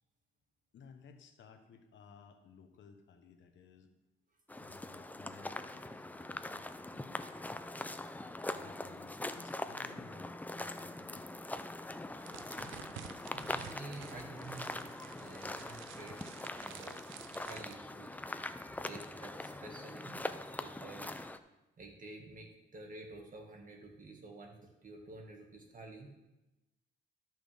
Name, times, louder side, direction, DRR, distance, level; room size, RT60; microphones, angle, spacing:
voice 1, 0.7-3.9 4.6-7.6 8.5-11.3, left 5 dB, 70° left, 6 dB, 1.1 m, -58 dB
sound 1, 4.5-21.4, left 2 dB, 10° left, 0.5 m, -43 dB
sound 2, 12.2-17.7, right 10 dB, 80° right, 0.6 m, -52 dB
voice 2, 13.2-14.8 15.2-16.1 16.5-16.9 17.4-18.4 18.7-20.2 20.5-21.1 21.8-24.5 24.8-26.1, right 2 dB, 40° right, 1 dB, 2.1 m, -50 dB
13.0 x 6.1 x 3.6 m, 0.98 s
cardioid pair, 90°, 20 cm